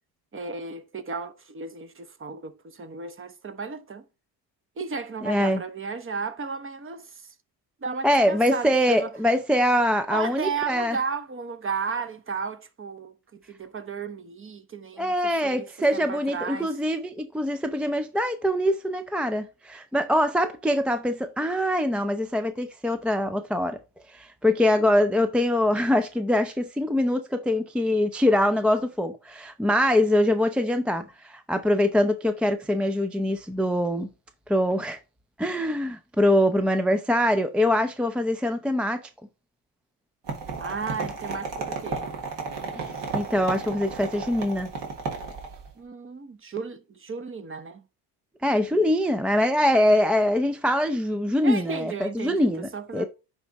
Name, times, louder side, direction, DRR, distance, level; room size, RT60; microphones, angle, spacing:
voice 1, 0.3-4.1 4.8-7.3 7.8-9.1 10.1-15.1 15.4-15.7 15.9-16.8 40.6-42.1 45.8-47.8 51.4-53.1, right 5 dB, 25° right, 0.9 m, -34 dB
voice 2, 5.2-5.6 8.0-11.0 15.0-23.8 24.1-34.1 34.5-35.0 35.4-39.0 42.8-44.7 48.4-53.1, left 1 dB, ahead, 0.4 m, -23 dB
sound 1, 40.3-45.7, right 4 dB, 60° right, 2.3 m, -33 dB
9.7 x 3.5 x 4.1 m
cardioid pair, 95°, 47 cm